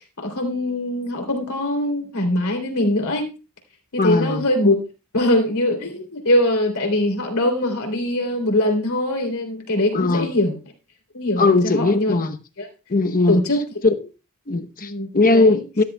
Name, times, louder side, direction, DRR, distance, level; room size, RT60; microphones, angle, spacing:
voice 1, 0.2-3.3 3.9-4.8 5.1-10.6 11.1-12.1 12.6-12.7 13.3-13.6 14.8-15.6, left 1 dB, 70° left, 3.1 m, -22 dB
voice 2, 4.0-4.4 9.9-10.3 11.4-12.4 12.9-13.4 13.8-13.9 14.5-15.8, left 3 dB, 40° left, 0.9 m, -19 dB
13.5 x 13.5 x 2.3 m
head